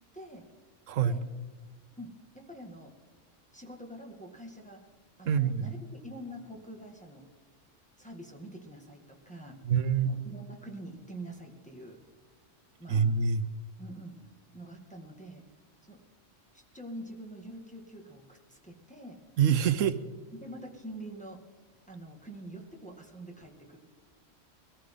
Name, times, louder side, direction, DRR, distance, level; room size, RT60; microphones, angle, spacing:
voice 1, 0.1-0.5 1.0-1.2 2.0-2.9 3.5-4.9 5.2-7.3 8.0-9.6 10.0-12.0 12.8-13.1 13.8-14.2 14.5-15.5 15.9-16.0 16.5-19.2 19.6-19.7 20.3-21.4 21.9-23.8, right 1 dB, 5° left, 0 dB, 1.8 m, -45 dB
voice 2, 0.9-1.2 5.3-5.7 9.6-10.1 12.9-13.5 19.4-20.0, right 7 dB, 80° right, 13 dB, 1.0 m, -25 dB
22.5 x 14.0 x 3.8 m, 1.4 s
omnidirectional pair, 1.3 m